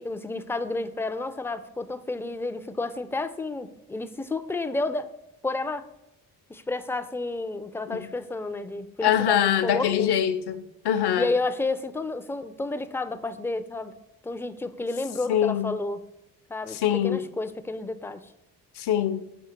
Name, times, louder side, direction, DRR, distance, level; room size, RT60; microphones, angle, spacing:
voice 1, 0.0-5.1 5.4-5.9 6.5-10.2 11.2-13.9 14.2-16.0 16.5-18.2, left 2 dB, 5° left, 0.4 m, -31 dB
voice 2, 9.0-11.3 15.3-15.7 16.7-17.2 18.8-19.3, left 10 dB, 65° left, 0.7 m, -24 dB
6.3 x 4.5 x 4.3 m
supercardioid pair, 60°, 43 cm